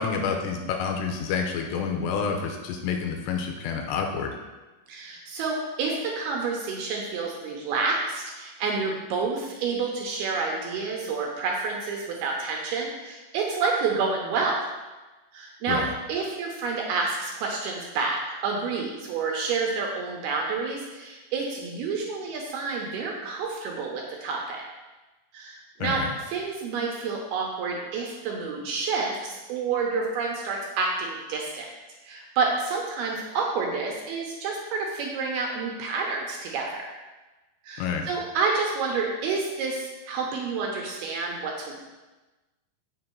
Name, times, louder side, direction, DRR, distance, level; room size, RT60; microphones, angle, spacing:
voice 1, 0.0-4.3 15.7-15.9 25.8-26.1 37.8-38.1, left 6 dB, 80° left, 3 dB, 2.8 m, -28 dB
voice 2, 4.9-14.6 15.3-15.8 16.1-24.6 25.3-31.7 32.0-36.9 37.6-41.8, right 4 dB, 75° right, 0 dB, 2.5 m, -29 dB
7.7 x 6.5 x 4.5 m, 1.2 s
omnidirectional pair, 5.2 m